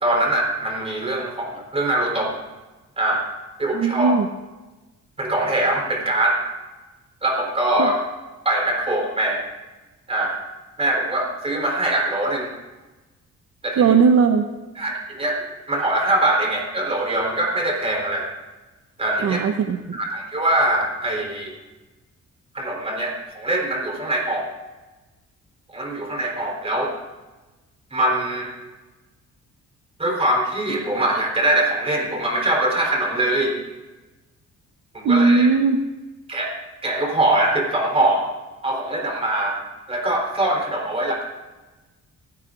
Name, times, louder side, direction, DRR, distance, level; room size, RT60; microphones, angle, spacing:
voice 1, 0.0-2.3 3.0-3.3 3.6-4.1 5.2-6.4 7.2-7.9 8.4-9.4 10.1-10.4 10.8-12.5 13.6-13.9 14.8-18.3 19.0-19.4 19.9-21.5 22.5-24.5 25.7-26.9 27.9-28.5 30.0-33.6 34.9-35.5 36.3-36.5 36.8-38.3 38.6-39.6 39.9-41.3, right 1 dB, 20° right, 0 dB, 3.7 m, -22 dB
voice 2, 3.7-4.3 7.8-7.9 13.8-14.4 19.2-20.0 35.0-35.8, right 5 dB, 55° right, 5 dB, 0.9 m, -18 dB
25.0 x 16.0 x 2.5 m, 1.2 s
cardioid pair, 145°, 30 cm